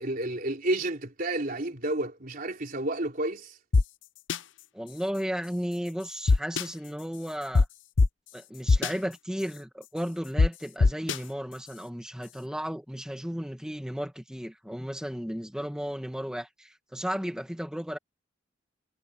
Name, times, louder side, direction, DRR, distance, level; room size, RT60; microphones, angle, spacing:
voice 1, 0.0-3.6, right 1 dB, 50° right, 3.9 m, -30 dB
sound 1, 3.7-3.8 4.3-4.4 6.3-6.6 7.6-7.7 8.0-8.1 8.7-8.9 10.4-10.5 10.8-11.2, left 3 dB, 90° left, 0.7 m, -19 dB
voice 2, 4.7-7.7 8.3-18.0, equal, 5° right, 2.1 m, -34 dB
head